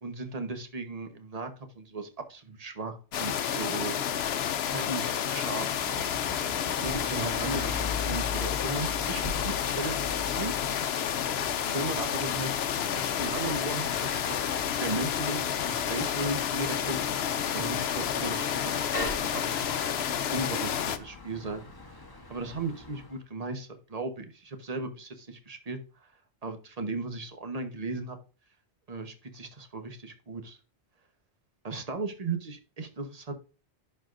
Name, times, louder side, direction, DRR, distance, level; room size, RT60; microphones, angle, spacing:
voice 1, 0.0-3.9 4.7-6.0 6.8-10.5 11.6-12.5 12.9-17.0 17.5-20.0 20.3-21.6 22.3-25.8 26.4-28.2 28.9-30.6 31.6-33.3, right 3 dB, 35° right, 7 dB, 1.2 m, -36 dB
sound 1, 3.1-21.0, left 9 dB, 75° left, 0.9 m, -30 dB
Bicycle / Mechanisms, 5.6-23.2, left 4 dB, 20° left, 1.1 m, -41 dB
11.0 x 4.7 x 2.5 m, 0.35 s
omnidirectional pair, 1.1 m